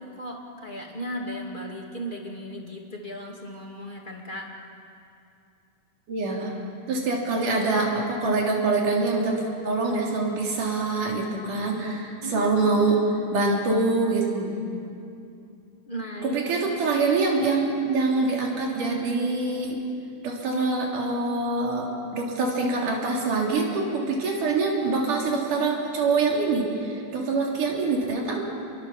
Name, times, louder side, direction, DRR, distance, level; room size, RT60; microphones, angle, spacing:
voice 1, 0.0-4.5 12.2-13.0 15.9-16.6, equal, 15° left, 0 dB, 2.0 m, -36 dB
voice 2, 6.1-6.6 6.9-13.0 13.3-14.6 16.2-19.8 20.2-28.4, right 3 dB, 75° right, -1 dB, 4.8 m, -25 dB
28.0 x 23.0 x 7.3 m, 2.6 s
omnidirectional pair, 3.7 m